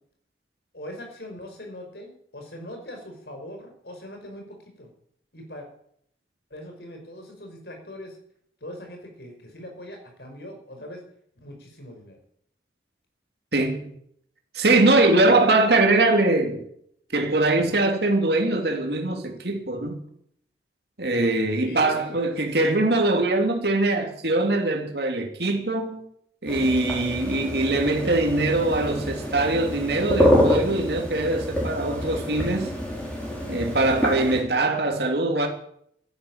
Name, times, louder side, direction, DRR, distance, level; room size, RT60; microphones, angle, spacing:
voice 1, 0.7-4.9 5.3-5.7 6.5-8.2 8.6-11.0 11.4-12.2 21.6-22.9, left 1 dB, 65° left, 5.2 m, -41 dB
voice 2, 13.5-13.9 14.5-16.6 17.1-20.0 21.0-26.0 26.4-32.7 33.5-35.5, right 2 dB, 65° right, 3.1 m, -22 dB
sound 1, 26.5-34.4, left 1 dB, 5° left, 4.9 m, -26 dB
13.0 x 11.5 x 8.9 m
head